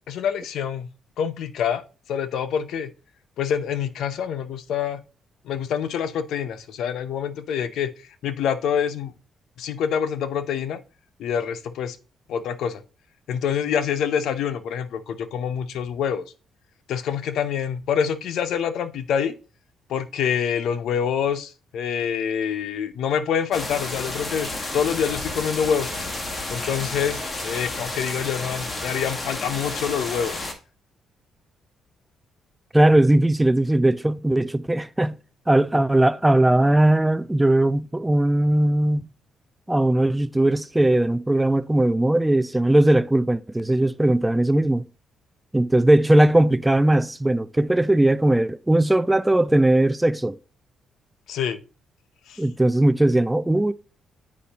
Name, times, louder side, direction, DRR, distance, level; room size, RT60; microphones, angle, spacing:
voice 1, 0.1-0.9 1.2-1.8 2.1-2.9 3.4-5.0 5.4-7.9 8.2-9.1 9.6-10.8 11.2-12.0 12.3-12.8 13.3-16.3 16.9-19.3 19.9-25.9 26.5-30.3 51.3-51.6 52.3-52.4, left 8 dB, 75° left, 0.7 m, -26 dB
sound 1, 23.5-30.5, left 2 dB, 30° left, 1.5 m, -31 dB
voice 2, 32.7-35.2 35.5-39.1 39.7-44.9 45.5-50.4 52.4-53.7, right 1 dB, 10° right, 0.4 m, -19 dB
8.5 x 5.1 x 2.9 m
cardioid pair, 90°, 0 cm